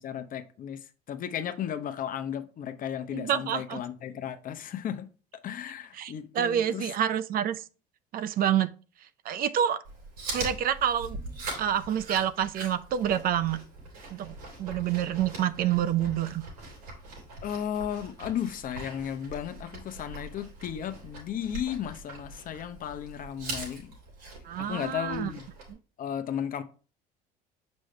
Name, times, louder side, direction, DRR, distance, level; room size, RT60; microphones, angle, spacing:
voice 1, 0.0-5.1 5.4-6.9 17.4-23.9 24.6-25.5 26.0-26.6, left 9 dB, 45° left, 0.8 m, -34 dB
voice 2, 3.1-3.8 6.0-7.6 8.1-8.7 9.2-9.8 10.3-11.2 11.6-13.6 14.1-16.4 24.4-25.3, right 10 dB, 50° right, 0.5 m, -28 dB
Chewing mastication, 9.8-25.7, right 2 dB, 90° right, 3.4 m, -42 dB
6.2 x 5.4 x 3.3 m
supercardioid pair, 85°, 19 cm